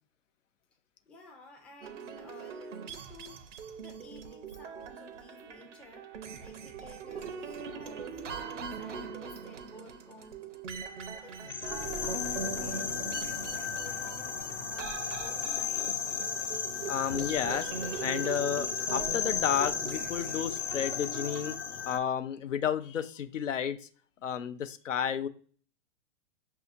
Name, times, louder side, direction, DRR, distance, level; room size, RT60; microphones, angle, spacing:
voice 1, 1.1-3.4 3.8-6.1 6.4-10.5 11.2-11.4 11.6-15.8, left 1 dB, 5° left, 0 dB, 0.4 m, -52 dB
sound 1, 1.8-21.6, right 5 dB, 75° right, 0.7 m, -41 dB
sound 2, 11.4-22.0, left 7 dB, 70° left, 0.9 m, -35 dB
voice 2, 16.9-17.7 18.0-21.6 21.9-23.8 24.2-25.3, left 8 dB, 90° left, 11 dB, 0.5 m, -31 dB
5.8 x 2.7 x 2.5 m, 0.43 s
hypercardioid pair, 115°, 37 cm